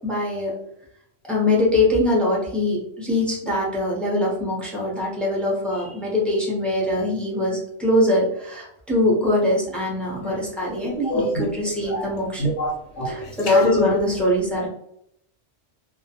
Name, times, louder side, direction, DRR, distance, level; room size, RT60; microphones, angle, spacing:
voice 1, 0.0-0.5 1.3-12.5 13.0-14.7, left 1 dB, ahead, 0.5 m, -23 dB
voice 2, 11.1-11.4 11.9-12.0 12.4-13.1 13.5-13.8, left 2 dB, 80° left, 0.9 m, -22 dB
2.3 x 2.1 x 2.8 m
omnidirectional pair, 1.3 m